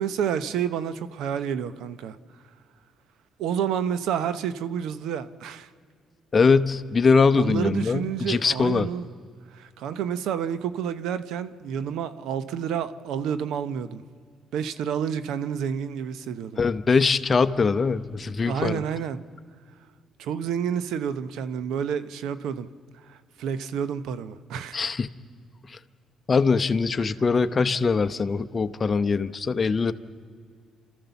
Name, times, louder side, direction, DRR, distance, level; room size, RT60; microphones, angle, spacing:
voice 1, 0.0-2.2 3.4-5.7 7.3-9.1 9.5-14.0 14.5-16.6 18.4-19.2 20.2-22.7 23.1-24.9 27.0-27.1, right 8 dB, 85° right, 0.8 m, -29 dB
voice 2, 6.3-8.9 16.6-18.8 24.7-25.1 26.3-29.9, left 4 dB, 35° left, 0.8 m, -22 dB
29.5 x 13.5 x 7.0 m
cardioid pair, 90°, 0 cm